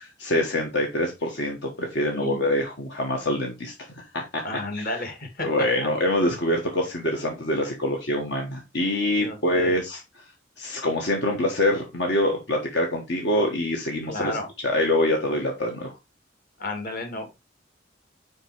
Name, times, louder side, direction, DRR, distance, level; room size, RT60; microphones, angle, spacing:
voice 1, 0.0-3.7 4.1-5.0 5.4-10.0 10.6-14.4 14.6-15.9, left 1 dB, 65° left, 1 dB, 1.5 m, -25 dB
voice 2, 4.4-5.9 9.2-9.8 14.1-14.5 16.6-17.3, left 2 dB, 50° left, 4 dB, 2.0 m, -32 dB
5.3 x 5.3 x 4.7 m, 0.24 s
head